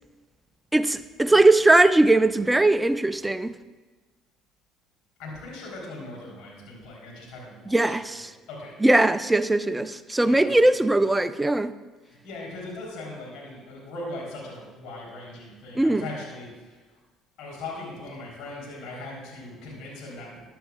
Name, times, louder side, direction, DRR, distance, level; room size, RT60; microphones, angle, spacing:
voice 1, 0.7-3.6 7.7-8.3 8.8-11.7 15.8-16.1, right 2 dB, 10° right, 0.5 m, -20 dB
voice 2, 5.2-7.8 8.1-8.7 10.2-10.6 12.0-17.0 17.4-20.4, left 2 dB, 75° left, 3.5 m, -39 dB
14.0 x 10.0 x 2.4 m
hypercardioid pair, 65°, 0 cm